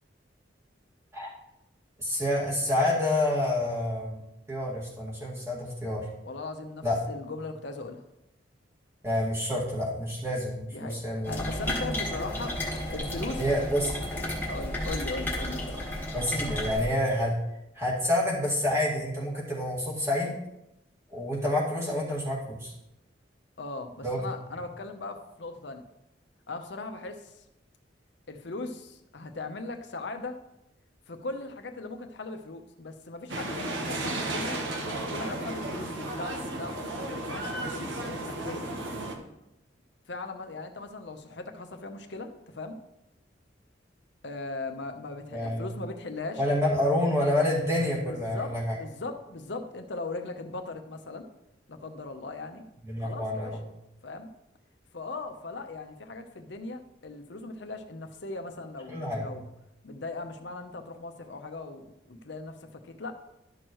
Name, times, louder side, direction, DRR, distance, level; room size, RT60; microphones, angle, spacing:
voice 1, 2.0-4.2 4.5-6.1 6.8-6.9 9.0-11.4 13.4-13.9 16.1-17.3 17.7-20.3 21.1-22.7 24.0-24.3 45.3-45.7 46.4-48.8 52.9-53.6 58.9-59.3, left 1 dB, 15° right, -5 dB, 2.1 m, -28 dB
voice 2, 6.2-8.0 10.7-12.6 12.9-13.5 14.5-15.9 23.6-25.9 26.5-27.4 28.3-30.4 31.1-34.6 35.1-38.7 40.1-42.8 44.2-46.4 48.1-51.3 51.7-52.6 53.0-53.6 54.0-54.3 54.9-59.5 59.8-63.2, left 3 dB, 70° left, 6 dB, 0.8 m, -39 dB
sound 1, 11.2-16.8, left 1 dB, 10° left, 1.6 m, -33 dB
sound 2, 33.3-39.1, right 2 dB, 80° right, 1.2 m, -34 dB
12.0 x 6.3 x 3.1 m, 0.88 s
head